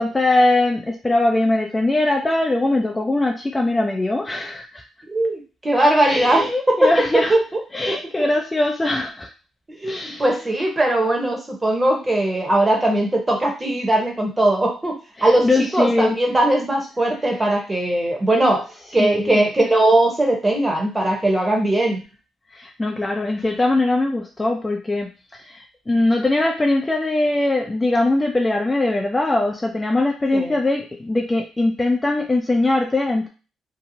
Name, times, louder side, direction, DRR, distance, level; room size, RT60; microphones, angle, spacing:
voice 1, 0.0-4.8 6.1-7.3 7.7-9.3 9.8-10.3 15.2-16.2 19.0-19.4 22.5-33.3, left 2 dB, 20° left, 1 dB, 0.4 m, -21 dB
voice 2, 5.1-6.9 7.3-7.6 7.9-8.0 9.7-18.7 18.9-22.0 30.3-30.6, right 1 dB, 20° right, 1 dB, 0.9 m, -19 dB
2.8 x 2.0 x 2.7 m, 0.32 s
cardioid pair, 90°, 0 cm